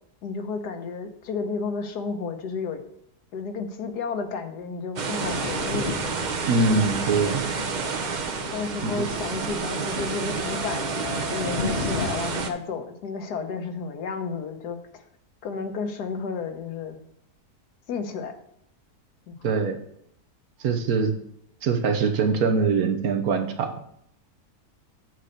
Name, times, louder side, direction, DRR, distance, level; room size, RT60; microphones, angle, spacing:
voice 1, 0.2-2.8 3.3-6.0 8.5-15.0 15.4-17.0 17.9-18.3 19.3-19.5, left 5 dB, 85° left, 6 dB, 1.5 m, -32 dB
sound 1, 5.0-12.5, right 5 dB, 45° right, 0.5 m, -30 dB
Thunder, 5.2-12.4, left 4 dB, 45° left, 1.1 m, -35 dB
voice 2, 6.5-7.4 8.8-9.1 19.4-19.8 20.6-21.1 21.6-23.7, right 4 dB, 70° right, 6 dB, 1.4 m, -23 dB
7.9 x 4.3 x 6.5 m, 0.72 s
omnidirectional pair, 1.7 m